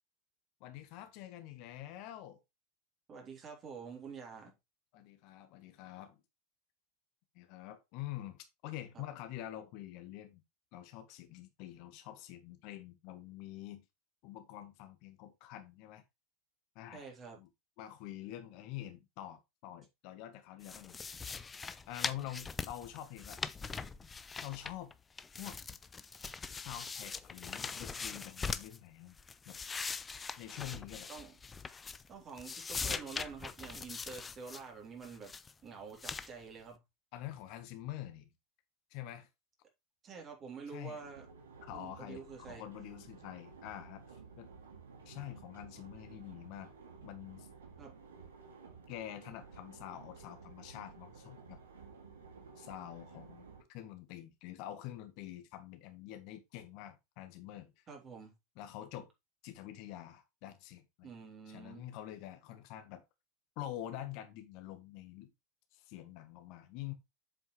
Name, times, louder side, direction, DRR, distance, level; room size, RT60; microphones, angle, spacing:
voice 1, 0.6-2.4 4.9-6.2 7.3-10.4 10.7-13.8 14.2-16.0 16.7-17.1 17.4-17.5 17.8-21.0 21.9-23.4 24.4-24.9 25.4-25.6 26.5-29.2 29.4-29.6 30.4-31.1 37.1-38.3 38.9-39.3 40.7-41.0 41.6-44.5 45.0-46.7 47.0-47.5 48.9-51.6 52.6-57.8 58.6-59.1 59.4-61.1 61.5-63.0 63.6-65.3 65.7-66.9, left 13 dB, 50° left, 1.4 m, -46 dB
voice 2, 3.1-4.5 8.9-9.0 16.9-17.4 31.1-31.4 32.1-35.3 35.6-36.8 40.0-41.3 41.7-42.6 47.8-48.0 57.9-58.3 61.0-61.9, right 5 dB, 30° right, 3.6 m, -48 dB
sound 1, 20.6-24.9 25.2-28.8 29.2-32.1 32.4-34.6 35.0-35.5 36.0-36.3, left 5 dB, 20° left, 0.7 m, -42 dB
sound 2, 41.0-53.6, right 5 dB, 75° right, 2.6 m, -54 dB
7.9 x 7.5 x 3.3 m
figure-of-eight pair, 80°, 0 cm